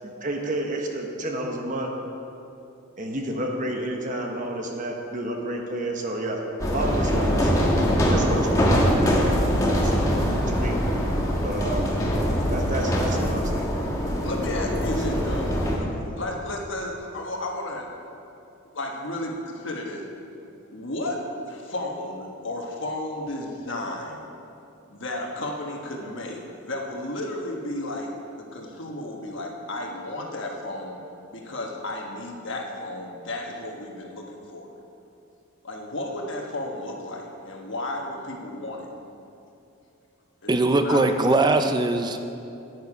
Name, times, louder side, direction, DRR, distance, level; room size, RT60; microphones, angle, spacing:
voice 1, 0.0-1.9 3.0-7.5 8.1-9.2 9.8-9.9 10.3-10.8 11.4-11.9 12.5-13.7, right 1 dB, 40° right, 2 dB, 1.1 m, -30 dB
sound 1, 6.6-15.8, equal, 15° left, 1.3 m, -23 dB
voice 2, 14.2-15.5 15.8-17.9 18.7-20.0 20.7-21.2 21.5-24.2 24.9-31.0 31.3-34.7 35.6-38.9 40.4-40.5 40.8-41.0, left 1 dB, 60° left, 0 dB, 1.3 m, -33 dB
voice 3, 40.5-42.2, right 2 dB, 20° right, 7 dB, 0.4 m, -21 dB
9.5 x 9.4 x 4.9 m, 2.7 s
head